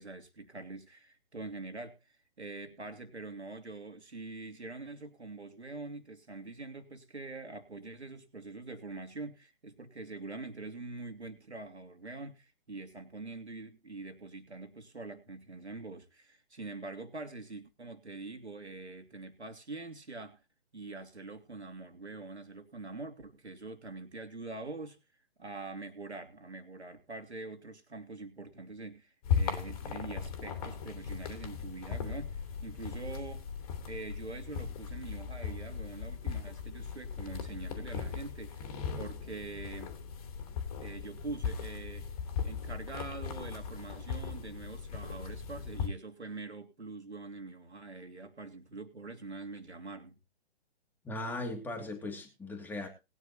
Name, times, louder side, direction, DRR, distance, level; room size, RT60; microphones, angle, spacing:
voice 1, 0.0-20.4 20.7-25.0 25.4-33.5 33.9-39.9 40.8-42.1 42.4-50.2, right 3 dB, 85° right, 3.2 m, -44 dB
sound 1, 29.2-45.9, left 6 dB, 35° left, 2.8 m, -38 dB
voice 2, 51.0-52.9, left 2 dB, 5° left, 2.7 m, -38 dB
20.5 x 9.8 x 3.0 m
figure-of-eight pair, 135°, 33 cm